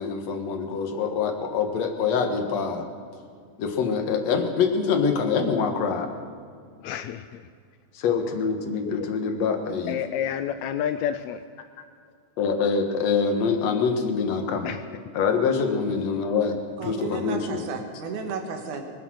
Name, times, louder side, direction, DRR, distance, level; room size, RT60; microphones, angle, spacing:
voice 1, 0.0-2.9 3.6-6.1 7.9-10.0 12.4-14.7 15.1-16.6 16.9-17.6, left 5 dB, 60° left, 5 dB, 2.5 m, -25 dB
voice 2, 6.8-7.4 8.8-9.0 9.9-11.4 14.7-14.8, left 9 dB, 80° left, 10 dB, 1.6 m, -29 dB
voice 3, 16.8-18.8, right 5 dB, 75° right, 4 dB, 3.1 m, -33 dB
24.5 x 8.6 x 6.3 m, 2.2 s
omnidirectional pair, 3.6 m